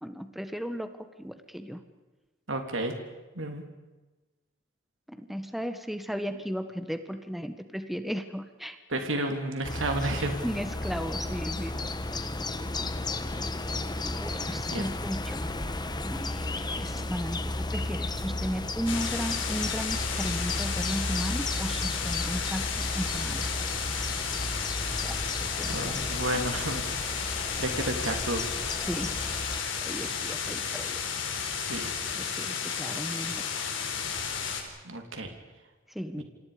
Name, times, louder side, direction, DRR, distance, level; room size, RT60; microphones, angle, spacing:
voice 1, 0.0-1.8 5.1-8.8 10.4-12.4 14.0-15.5 16.0-23.4 25.0-26.4 28.9-29.3 29.8-31.0 32.1-33.5 35.9-36.2, equal, ahead, 8 dB, 1.5 m, -36 dB
voice 2, 2.5-2.9 3.3-3.6 8.9-10.4 14.7-14.9 25.7-28.5 31.6-31.9 34.8-35.3 36.2-36.3, right 1 dB, 75° right, 4 dB, 3.3 m, -32 dB
sound 1, 9.6-29.6, left 2 dB, 20° left, 1.4 m, -34 dB
sound 2, 18.9-34.6, left 6 dB, 70° left, 4.4 m, -33 dB
28.5 x 26.5 x 5.2 m, 1.2 s
head